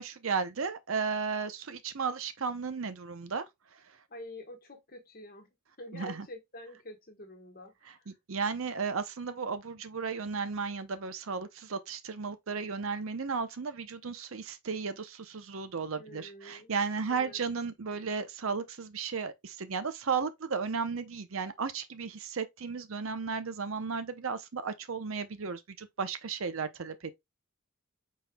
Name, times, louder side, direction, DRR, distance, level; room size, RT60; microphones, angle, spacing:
voice 1, 0.0-3.5 5.9-6.3 8.1-27.1, right 5 dB, 65° right, 0.7 m, -34 dB
voice 2, 4.1-8.1 16.0-16.7 17.1-17.4, left 1 dB, 40° left, 1.3 m, -47 dB
5.4 x 4.3 x 2.2 m
head